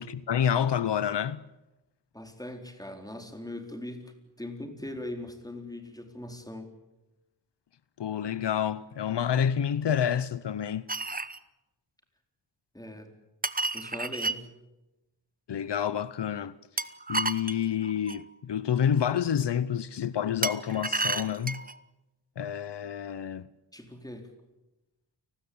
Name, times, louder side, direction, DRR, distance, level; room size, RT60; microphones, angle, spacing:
voice 1, 0.0-1.4 8.0-10.9 15.5-21.6 22.4-23.5, left 8 dB, 75° left, 0.8 m, -29 dB
voice 2, 2.1-6.7 12.7-13.1 13.7-14.5 23.7-24.3, left 1 dB, 10° left, 4.3 m, -40 dB
sound 1, 10.9-11.4 13.4-14.4 16.8-18.2 20.4-21.8, right 3 dB, 20° right, 1.0 m, -31 dB
30.0 x 19.5 x 8.7 m
wide cardioid pair, 110°, 42 cm